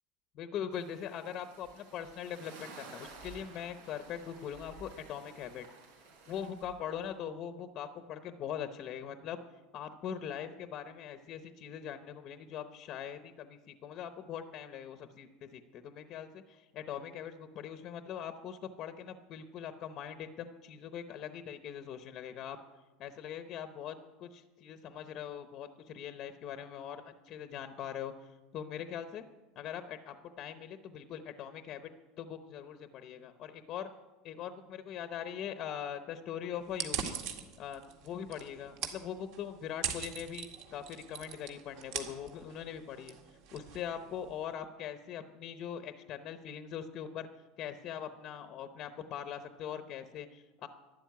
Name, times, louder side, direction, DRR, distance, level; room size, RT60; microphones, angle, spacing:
voice 1, 0.3-5.7 6.3-9.4 9.7-22.6 23.0-29.2 29.6-33.9 34.2-37.2 37.6-43.2 43.5-47.3 47.6-50.7, left 9 dB, 30° left, 9 dB, 0.8 m, -42 dB
sound 1, 0.7-7.1, right 3 dB, 90° right, 4.9 m, -53 dB
sound 2, 36.7-44.4, right 8 dB, 55° right, 1.9 m, -42 dB
12.0 x 12.0 x 9.3 m, 1.2 s
supercardioid pair, 170°, 0 cm